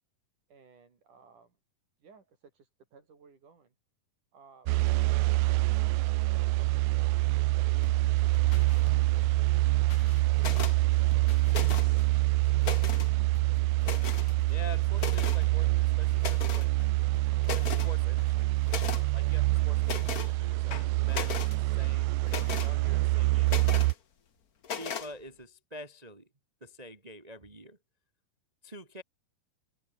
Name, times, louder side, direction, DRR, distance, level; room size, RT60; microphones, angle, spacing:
voice 1, 0.5-1.6 2.0-3.8 4.3-4.7, right 5 dB, 70° right, 6.2 m, -60 dB
sound 1, 4.7-23.9, right 21 dB, 85° right, 1.6 m, -26 dB
sound 2, 7.8-20.1, left 11 dB, 75° left, 3.2 m, -52 dB
sound 3, 10.4-10.8 11.5-12.0 12.4-13.1 13.8-14.3 15.0-15.4 16.2-16.7 17.1-17.2 17.4-17.9 18.7-19.0 19.8-20.3 20.7-21.5 22.3-22.7 23.5-23.9 24.6-25.1, left 7 dB, 55° left, 1.0 m, -36 dB
voice 2, 14.5-16.8 17.5-18.6 19.1-24.0 24.8-26.3 26.6-27.8 28.6-29.0, equal, 35° right, 0.6 m, -47 dB
omnidirectional pair, 3.8 m